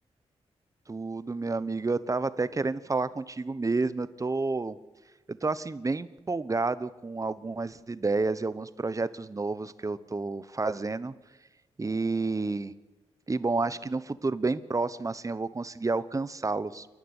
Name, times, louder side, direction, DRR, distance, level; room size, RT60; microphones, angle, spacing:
voice 1, 0.9-4.8 5.3-11.1 11.8-12.7 13.3-16.9, right 3 dB, 30° right, 16 dB, 1.0 m, -30 dB
28.0 x 11.5 x 9.8 m, 1.2 s
cardioid pair, 60°, 11 cm